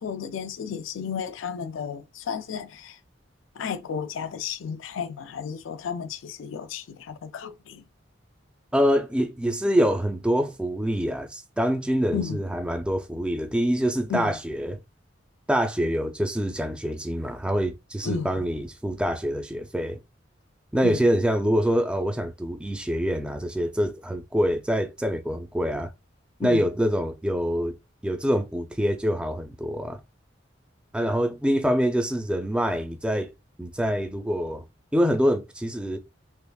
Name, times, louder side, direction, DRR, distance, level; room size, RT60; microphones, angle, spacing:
voice 1, 0.0-3.0 3.6-7.8 12.1-12.4 14.1-14.3 18.0-18.3 20.8-21.0 26.4-26.7, left 6 dB, 85° left, 0.4 m, -33 dB
voice 2, 8.7-14.8 15.5-20.0 20.7-25.9 26.4-27.7 28.0-30.0 30.9-33.3 33.6-34.6 34.9-36.0, equal, 5° right, 0.4 m, -25 dB
3.5 x 3.3 x 2.3 m
head